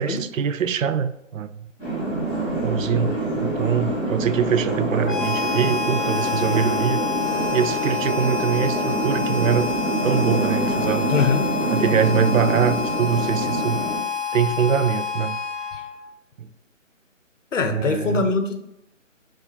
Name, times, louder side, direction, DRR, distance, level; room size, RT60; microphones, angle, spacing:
voice 1, 0.0-1.7 2.6-7.0 7.5-9.7 10.0-11.2 11.7-13.8 14.3-15.4 16.4-16.5 17.7-18.3, right 7 dB, 80° right, 13 dB, 0.5 m, -23 dB
sound 1, 1.8-14.0, right 2 dB, 5° right, 0.7 m, -26 dB
Harmonica, 5.0-16.1, left 6 dB, 25° left, 0.9 m, -28 dB
voice 2, 11.1-11.5 17.5-18.5, left 4 dB, 70° left, 6 dB, 0.8 m, -22 dB
3.6 x 3.3 x 4.1 m, 0.82 s
hypercardioid pair, 160°, 39 cm